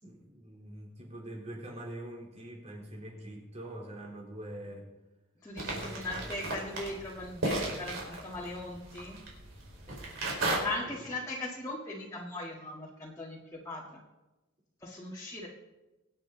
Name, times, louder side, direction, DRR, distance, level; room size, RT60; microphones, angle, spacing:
voice 1, 0.0-4.9 5.6-6.3 9.9-10.3 10.8-11.1, right 1 dB, 30° right, -1 dB, 3.4 m, -44 dB
voice 2, 5.4-9.2 10.6-14.0 14.8-15.5, left 2 dB, 15° left, -4 dB, 1.8 m, -39 dB
sound 1, 5.6-10.6, right 2 dB, 65° right, 4.8 m, -35 dB
24.0 x 9.0 x 3.9 m, 1.1 s
head